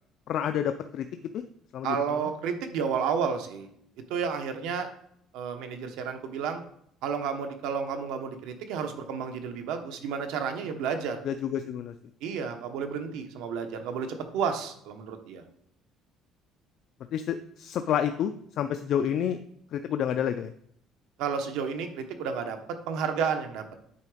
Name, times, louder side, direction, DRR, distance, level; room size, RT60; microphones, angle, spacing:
voice 1, 0.3-1.1 1.3-1.4 1.7-2.3 11.3-11.9 17.1-18.3 18.6-19.4 19.7-20.5, left 9 dB, 50° left, 9 dB, 0.4 m, -29 dB
voice 2, 1.8-3.7 4.1-4.9 5.3-6.6 7.0-11.3 12.2-15.4 21.2-22.6 22.9-23.6, right 6 dB, 85° right, 6 dB, 1.1 m, -31 dB
8.4 x 3.8 x 5.0 m, 0.70 s
cardioid pair, 155°, 0 cm